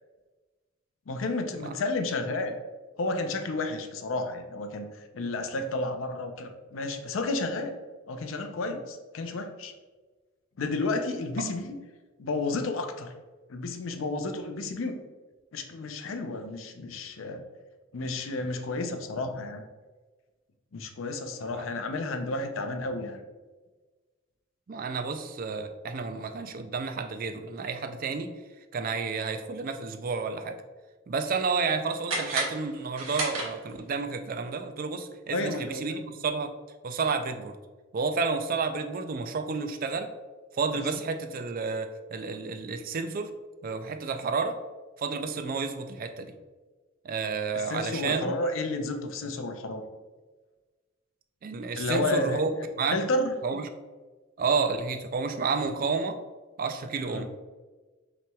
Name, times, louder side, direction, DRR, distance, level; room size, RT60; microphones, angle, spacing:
voice 1, 1.1-2.5 3.0-7.7 8.1-9.7 10.6-11.8 12.2-13.1 13.5-15.0 15.5-17.4 17.9-19.6 20.7-23.2 35.3-36.0 47.5-49.8 51.8-52.4 52.9-53.4 57.1-57.3, left 2 dB, 70° left, 6 dB, 0.5 m, -31 dB
voice 2, 24.7-28.3 28.7-30.6 31.1-36.5 36.8-37.6 37.9-40.1 40.5-43.3 43.6-44.6 45.0-46.3 47.0-48.5 51.4-52.5 52.8-53.0 53.4-53.7 54.4-56.2 56.6-57.3, right 4 dB, 45° right, 8 dB, 0.4 m, -31 dB
sound 1, 32.0-34.0, right 2 dB, 85° right, 1.3 m, -33 dB
5.7 x 3.0 x 2.3 m, 1.3 s
head